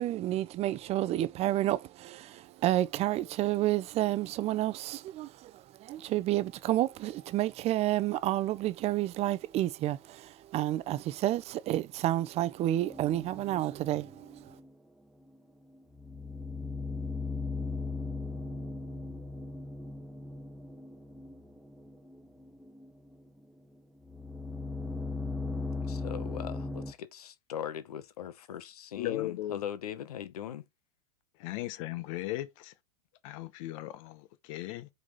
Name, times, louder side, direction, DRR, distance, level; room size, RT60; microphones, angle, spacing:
voice 1, 0.0-5.5 5.8-14.4, right 14 dB, 35° right, 0.5 m, -30 dB
sound 1, 12.9-14.8 15.2-15.4 15.7-23.4 23.8-26.9, left 3 dB, ahead, 1.0 m, -38 dB
voice 2, 25.9-30.6, left 9 dB, 85° left, 1.0 m, -40 dB
voice 3, 29.0-29.6 31.4-32.7 33.2-34.9, left 15 dB, 60° left, 1.0 m, -37 dB
4.8 x 4.0 x 5.4 m
supercardioid pair, 125°, 19 cm